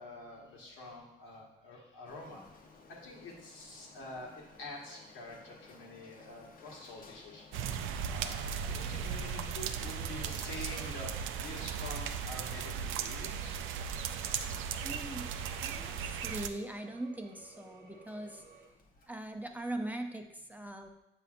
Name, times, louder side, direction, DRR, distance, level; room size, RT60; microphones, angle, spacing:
voice 1, 0.0-2.4 3.0-4.3 4.6-7.4 8.1-13.6, left 2 dB, 85° left, -3 dB, 1.5 m, -47 dB
Printer, 2.0-19.7, left 4 dB, 45° left, 0.8 m, -58 dB
sound 1, 7.5-16.5, right 7 dB, 85° right, 0.4 m, -37 dB
sound 2, 13.3-18.7, right 4 dB, 45° right, 0.9 m, -57 dB
voice 2, 14.8-15.3 15.6-18.4 19.1-20.9, right 1 dB, 10° right, 4 dB, 0.5 m, -41 dB
6.8 x 5.6 x 2.5 m, 0.88 s
cardioid pair, 90°, 20 cm